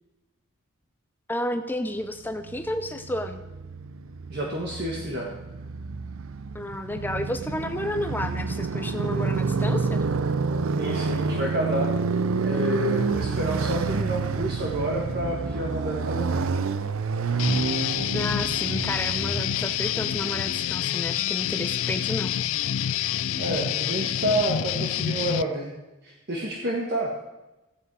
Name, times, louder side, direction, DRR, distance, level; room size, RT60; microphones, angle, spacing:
voice 1, 1.3-3.4 6.5-10.0 18.1-22.3, left 1 dB, 10° left, 8 dB, 0.5 m, -31 dB
Motorcycle, 2.3-20.5, right 4 dB, 75° right, 0.5 m, -29 dB
voice 2, 4.3-5.3 10.8-11.9 12.3-16.5 23.4-25.7 26.0-27.1, right 1 dB, 50° right, -2 dB, 1.4 m, -29 dB
Guitar, 17.4-25.4, left 10 dB, 70° left, 0.4 m, -27 dB
15.5 x 8.2 x 4.8 m, 1.0 s
head